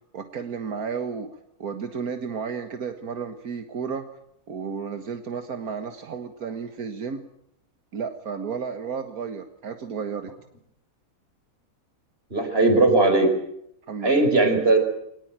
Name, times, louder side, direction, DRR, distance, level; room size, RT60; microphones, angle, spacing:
voice 1, 0.1-1.3 1.6-4.1 4.5-7.2 7.9-10.3 13.9-14.1, right 6 dB, 80° right, 7 dB, 2.0 m, -32 dB
voice 2, 12.3-13.3 14.0-14.8, right 2 dB, 40° right, 6 dB, 5.1 m, -18 dB
23.5 x 19.0 x 9.0 m, 0.75 s
omnidirectional pair, 1.5 m